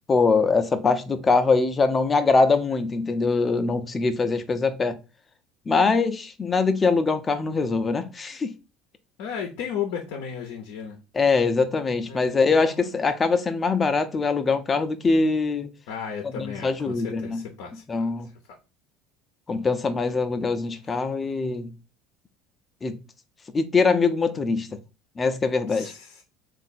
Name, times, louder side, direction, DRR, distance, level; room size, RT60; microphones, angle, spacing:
voice 1, 0.1-5.0 5.7-8.5 11.1-15.7 16.3-17.4 17.9-18.3 19.5-21.7 22.8-23.0 23.5-24.7 25.2-25.9, left 4 dB, 30° left, 0.6 m, -23 dB
voice 2, 9.2-11.0 12.1-13.0 15.9-18.6 20.9-21.0 25.7-26.2, left 7 dB, 70° left, 0.7 m, -35 dB
3.6 x 2.6 x 4.0 m
hypercardioid pair, 70°, 0 cm